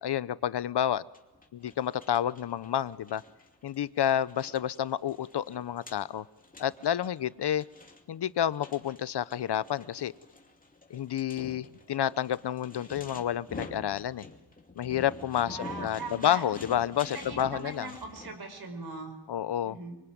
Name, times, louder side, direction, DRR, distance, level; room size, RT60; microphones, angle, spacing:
voice 1, 0.0-1.0 1.5-3.2 3.6-6.2 6.6-7.6 8.1-10.1 10.9-14.3 14.8-17.9 19.3-19.8, left 10 dB, 90° left, 17 dB, 0.8 m, -30 dB
sound 1, 1.1-18.4, left 3 dB, 20° left, 2.7 m, -48 dB
voice 2, 15.5-16.4 17.0-19.1 19.6-19.9, right 3 dB, 70° right, 6 dB, 5.4 m, -40 dB
24.5 x 24.5 x 9.4 m, 1.1 s
wide cardioid pair, 160°, 39 cm